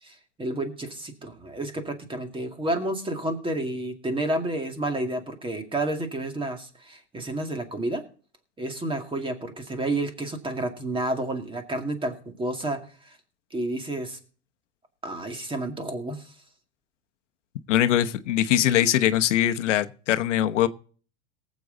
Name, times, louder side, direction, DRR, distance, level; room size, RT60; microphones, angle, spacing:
voice 1, 0.0-8.0 8.6-13.2 13.5-14.2 15.0-16.3, right 1 dB, 15° right, 2.2 m, -30 dB
voice 2, 17.7-20.7, left 11 dB, 85° left, 1.0 m, -22 dB
18.5 x 7.7 x 4.0 m
supercardioid pair, 120°, 35 cm